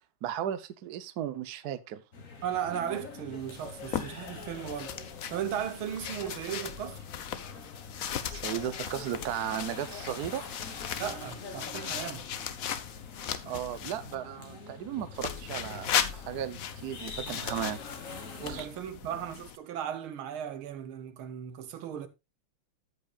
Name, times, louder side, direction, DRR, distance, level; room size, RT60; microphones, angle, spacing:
voice 1, 0.2-2.0 8.3-10.5 13.5-17.8 18.4-18.7, right 10 dB, 60° right, 1.1 m, -35 dB
sound 1, 2.1-18.6, left 4 dB, 40° left, 1.8 m, -45 dB
voice 2, 2.4-4.9 5.3-7.0 11.0-12.3 18.4-22.1, right 9 dB, 75° right, 1.8 m, -36 dB
sound 2, 3.5-14.2 15.1-19.6, left 9 dB, 60° left, 0.9 m, -37 dB
13.5 x 8.0 x 2.4 m
omnidirectional pair, 2.3 m